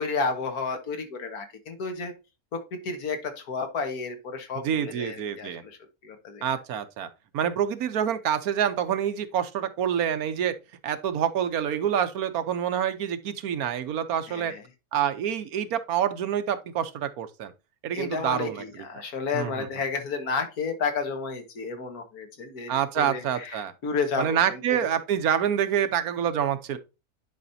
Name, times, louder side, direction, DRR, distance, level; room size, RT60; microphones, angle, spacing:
voice 1, 0.0-2.1 2.5-5.8 6.0-6.4 14.3-14.6 17.9-24.9, left 4 dB, 75° left, 1.9 m, -32 dB
voice 2, 4.6-5.6 6.4-7.1 7.3-10.5 10.8-14.5 14.9-17.5 17.8-18.6 19.3-19.7 22.7-23.7 24.2-26.8, right 9 dB, 75° right, 1.2 m, -27 dB
10.0 x 5.0 x 2.7 m
omnidirectional pair, 1.6 m